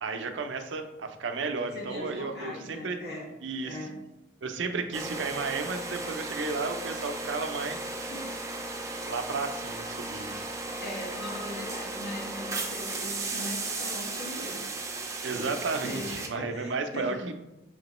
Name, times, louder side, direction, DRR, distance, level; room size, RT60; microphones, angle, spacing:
voice 1, 0.0-3.0 3.4-3.8 4.4-7.9 9.1-10.4 15.2-17.3, right 4 dB, 85° right, 7 dB, 0.5 m, -33 dB
voice 2, 1.7-3.3 3.6-4.0 8.1-8.3 10.8-14.7 15.3-17.3, left 1 dB, 55° left, -3 dB, 1.3 m, -40 dB
sound 1, 4.9-16.3, right 2 dB, 15° right, 0.4 m, -35 dB
5.8 x 2.9 x 3.0 m, 0.97 s
head